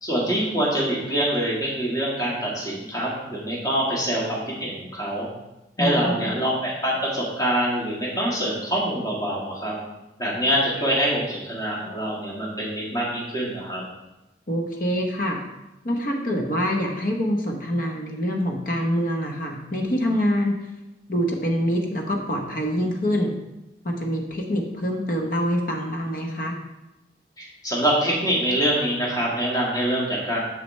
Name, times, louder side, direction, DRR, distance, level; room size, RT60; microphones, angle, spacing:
voice 1, 0.0-5.3 5.8-9.7 10.2-13.8 27.4-30.4, right 1 dB, 20° left, -5 dB, 1.7 m, -25 dB
voice 2, 5.8-6.4 14.5-15.4 15.8-20.5 21.1-23.3 23.8-26.6, equal, 50° left, 1 dB, 1.0 m, -25 dB
6.8 x 6.4 x 3.2 m, 0.97 s
head